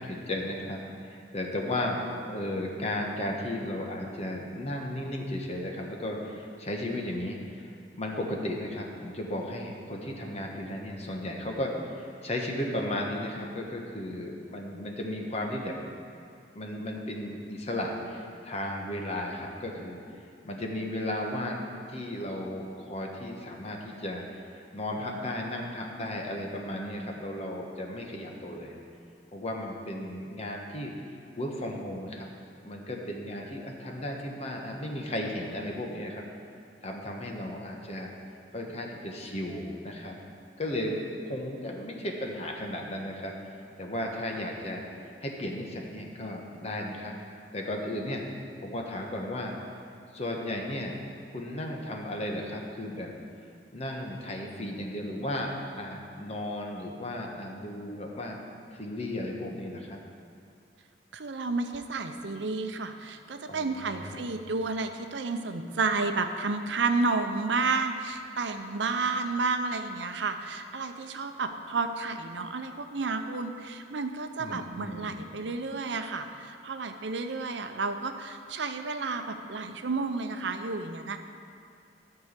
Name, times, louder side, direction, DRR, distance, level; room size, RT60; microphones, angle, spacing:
voice 1, 0.0-7.7 8.0-15.7 16.5-20.0 20.4-21.6 21.9-24.2 24.5-28.8 29.3-30.9 31.4-32.3 32.6-36.2 36.8-38.1 38.5-40.2 40.6-43.3 43.8-44.8 45.2-47.1 47.5-48.2 48.6-49.5 50.1-51.0 51.3-53.1 53.7-58.4 58.7-60.0 63.5-64.3 74.4-75.1, left 1 dB, 35° left, 0 dB, 1.2 m, -35 dB
voice 2, 61.1-81.2, right 3 dB, 70° right, 7 dB, 0.7 m, -31 dB
12.5 x 4.7 x 8.2 m, 2.4 s
head